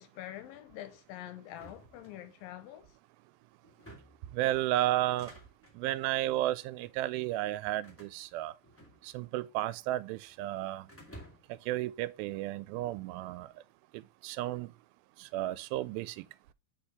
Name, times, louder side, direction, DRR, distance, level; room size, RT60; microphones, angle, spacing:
voice 1, 0.0-3.0, left 13 dB, 85° left, 2.4 m, -46 dB
sound 1, 1.5-2.6 3.6-4.3 5.0-5.8 6.6-7.0 7.8-9.3 9.6-10.4 10.9-11.6, equal, 10° left, 0.8 m, -54 dB
voice 2, 4.1-5.4 5.7-8.6 9.0-10.9 11.5-13.6 13.9-14.7 15.2-16.3, right 15 dB, 90° right, 2.4 m, -33 dB
5.2 x 4.4 x 5.6 m
omnidirectional pair, 4.1 m